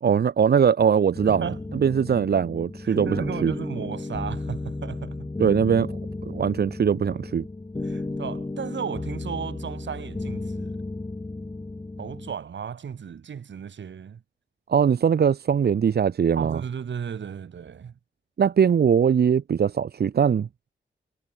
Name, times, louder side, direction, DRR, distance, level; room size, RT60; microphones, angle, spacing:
voice 1, 0.0-1.5 1.7-3.5 5.4-6.0 6.3-7.4 14.7-16.6 18.4-20.5, right 7 dB, 55° right, 1.0 m, -21 dB
sound 1, 1.1-12.3, left 2 dB, 20° left, 4.2 m, -34 dB
voice 2, 1.3-1.6 2.8-5.3 7.8-10.7 12.0-14.2 16.3-17.9, right 7 dB, 75° right, 6.1 m, -35 dB
wide cardioid pair, 180°, 19 cm